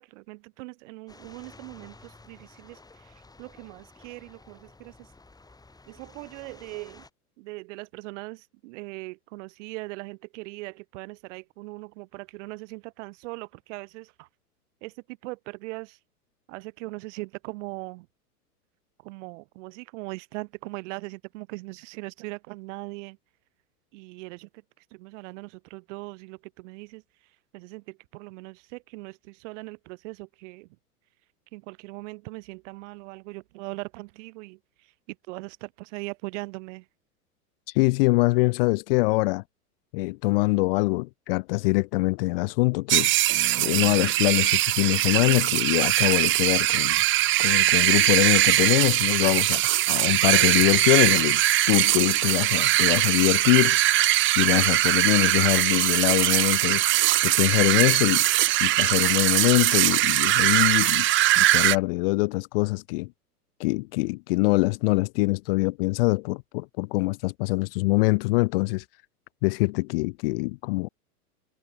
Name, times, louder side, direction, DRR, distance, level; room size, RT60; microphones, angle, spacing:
voice 1, 0.0-5.1 5.9-7.1 7.4-14.3 14.8-16.0 16.5-18.1 19.0-23.2 23.9-30.7 31.5-36.9 54.5-54.7, right 25 dB, 50° right, 3.0 m, -40 dB
sound 1, 1.1-7.1, left 3 dB, 10° left, 5.2 m, -52 dB
voice 2, 37.7-39.4 39.9-43.1 43.6-47.0 47.4-49.6 49.9-51.4 51.7-53.8 54.4-56.8 57.2-58.3 58.6-61.1 61.4-63.1 63.6-68.8 69.4-70.9, left 25 dB, 40° left, 0.5 m, -24 dB
sound 2, 42.9-61.8, right 16 dB, 25° right, 0.9 m, -21 dB
hypercardioid pair, 100°, 46 cm